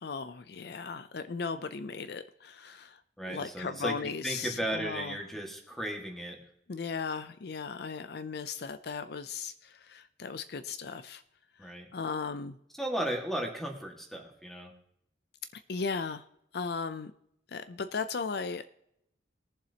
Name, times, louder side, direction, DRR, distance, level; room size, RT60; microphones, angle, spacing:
voice 1, 0.0-3.0 3.3-5.2 6.7-11.2 11.6-12.6 15.5-16.2 16.5-17.1 17.5-18.7, left 5 dB, 55° left, 11 dB, 0.5 m, -37 dB
voice 2, 3.2-6.4 11.6-11.9 12.8-14.7, right 1 dB, ahead, 1 dB, 1.8 m, -35 dB
20.5 x 7.3 x 2.9 m, 0.75 s
head